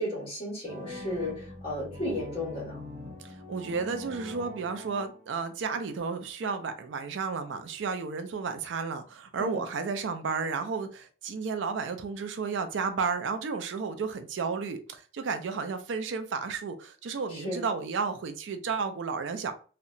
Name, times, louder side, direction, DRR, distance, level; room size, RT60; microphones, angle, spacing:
voice 1, 0.0-2.8 9.4-9.6 17.3-17.6, left 1 dB, 30° left, 1.4 m, -34 dB
sound 1, 0.6-5.6, left 1 dB, 40° right, 0.7 m, -43 dB
voice 2, 3.2-19.5, right 5 dB, 80° right, 0.4 m, -32 dB
2.8 x 2.1 x 2.5 m
head